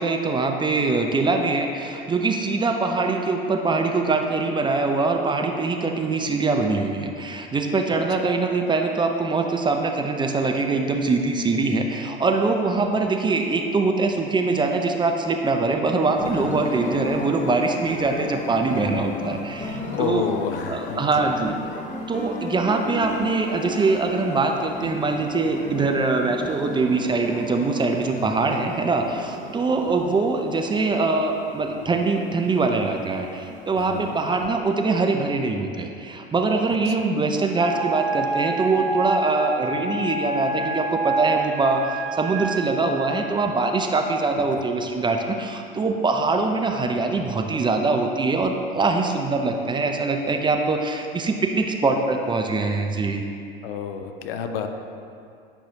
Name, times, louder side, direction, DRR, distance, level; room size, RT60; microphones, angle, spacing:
voice 1, 0.0-20.2 20.7-21.5 22.1-53.2, right 3 dB, 15° right, 4 dB, 0.5 m, -23 dB
sound 1, 16.1-34.5, left 2 dB, 25° left, 1.0 m, -35 dB
voice 2, 16.3-16.6 19.9-21.3 33.8-34.2 36.9-37.1 44.4-44.7 53.6-54.7, left 7 dB, 70° left, 6 dB, 0.7 m, -30 dB
Wind instrument woodwind instrument, 37.5-42.9, right 2 dB, 55° right, 1.4 m, -27 dB
10.0 x 5.7 x 2.8 m, 2.5 s
figure-of-eight pair, 80°, 30 cm